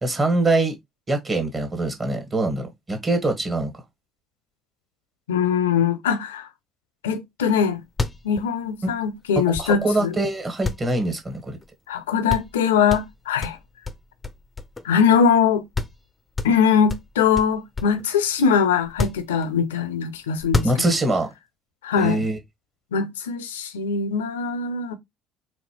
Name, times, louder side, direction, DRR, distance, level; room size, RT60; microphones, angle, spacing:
voice 1, 0.0-0.7 1.1-3.7 9.6-11.6 20.6-21.3 22.0-22.4, right 2 dB, 25° right, 1.5 m, -23 dB
voice 2, 5.3-6.5 7.0-7.8 8.2-10.1 11.9-13.6 14.8-15.6 16.4-20.9 21.8-22.2 22.9-24.9, left 7 dB, 75° left, 0.5 m, -21 dB
sound 1, 7.6-7.7 7.9-10.1 10.6-11.7 12.0-12.1 12.3-12.6 12.9-15.0 15.4-15.5 15.7-16.0 16.3-18.1 18.8-19.8 20.4-21.2, left 3 dB, 20° left, 0.6 m, -29 dB
4.2 x 2.8 x 3.1 m
figure-of-eight pair, 55°, 0 cm